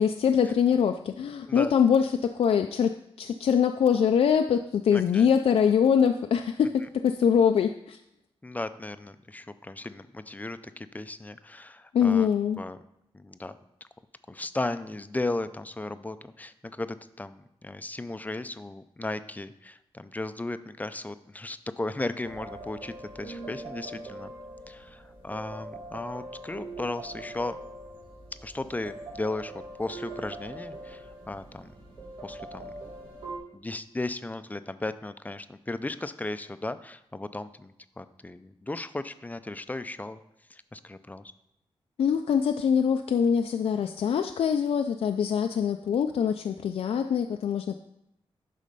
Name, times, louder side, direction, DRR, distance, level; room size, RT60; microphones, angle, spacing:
voice 1, 0.0-8.0 11.9-12.6 42.0-47.7, left 7 dB, 80° left, 6 dB, 0.4 m, -24 dB
voice 2, 4.9-5.3 8.4-12.3 12.6-12.8 13.1-13.6 14.3-24.3 24.7-27.6 28.4-31.7 32.2-32.7 33.5-40.2 40.5-41.2, left 2 dB, 15° left, 12 dB, 0.4 m, -36 dB
sound 1, 22.2-33.4, right 2 dB, 75° right, 3.5 m, -42 dB
11.5 x 4.2 x 5.4 m, 0.83 s
wide cardioid pair, 100°, 10 cm